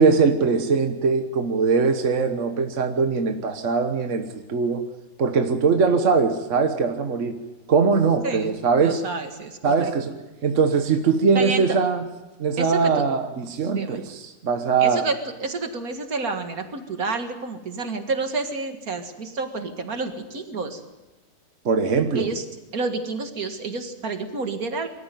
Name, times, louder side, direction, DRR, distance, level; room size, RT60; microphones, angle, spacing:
voice 1, 0.0-4.8 5.2-7.4 7.7-9.0 9.6-10.1 10.4-12.0 12.4-15.0 21.6-22.3, right 5 dB, 55° right, 6 dB, 1.5 m, -21 dB
voice 2, 8.8-9.9 11.3-11.7 12.6-13.0 13.7-14.0 14.8-20.8 22.1-22.4 22.7-24.9, right 3 dB, 75° right, 6 dB, 2.3 m, -29 dB
23.5 x 14.0 x 9.2 m, 1.1 s
omnidirectional pair, 1.5 m